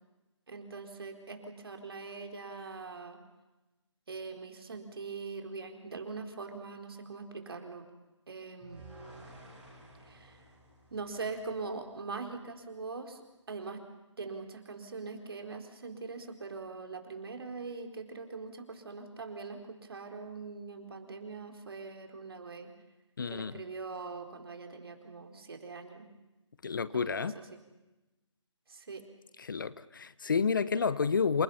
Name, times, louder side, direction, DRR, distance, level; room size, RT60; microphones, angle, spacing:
voice 1, 0.5-3.2 4.1-7.8 8.3-8.8 10.1-10.3 10.9-13.2 13.5-13.8 14.2-22.7 23.3-26.1 26.9-27.6 28.7-29.0, right 4 dB, 55° right, 4 dB, 4.3 m, -42 dB
sound 1, 8.6-11.8, right 1 dB, 5° right, 6.3 m, -53 dB
voice 2, 23.2-23.6 26.6-27.4 29.4-31.4, left 5 dB, 45° left, 16 dB, 0.9 m, -30 dB
28.5 x 28.5 x 5.7 m, 1.0 s
figure-of-eight pair, 160°, 15 cm